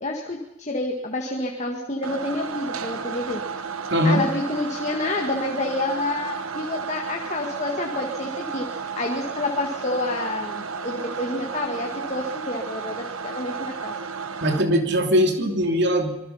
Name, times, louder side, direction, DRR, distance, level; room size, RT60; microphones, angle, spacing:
voice 1, 0.0-3.4 4.0-8.7 9.0-13.0 13.2-13.9, left 2 dB, 30° left, 2 dB, 1.9 m, -28 dB
sound 1, 2.0-14.6, right 5 dB, 75° right, 1.3 m, -33 dB
voice 2, 3.9-4.2 14.4-16.1, equal, 50° right, 5 dB, 2.9 m, -20 dB
25.5 x 22.0 x 5.8 m, 0.96 s
head